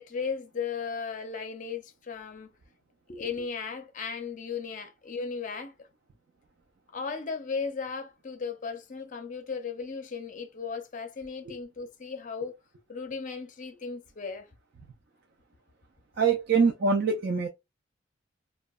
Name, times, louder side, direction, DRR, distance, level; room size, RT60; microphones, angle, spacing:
voice 1, 0.0-2.5 3.1-5.9 6.9-12.5 12.9-14.5, left 5 dB, 40° left, 0.5 m, -36 dB
voice 2, 16.2-17.5, right 5 dB, 50° right, 0.4 m, -24 dB
2.8 x 2.2 x 2.2 m
head